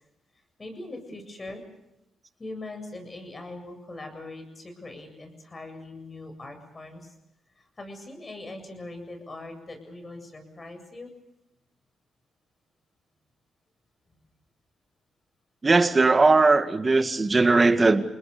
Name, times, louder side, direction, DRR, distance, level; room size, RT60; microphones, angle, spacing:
voice 1, 0.6-1.6 2.4-7.1 7.6-11.1, left 2 dB, 30° left, 6 dB, 7.7 m, -41 dB
voice 2, 15.6-18.0, right 3 dB, 30° right, 9 dB, 2.0 m, -19 dB
29.5 x 20.5 x 6.9 m, 0.87 s
supercardioid pair, 70°, 0 cm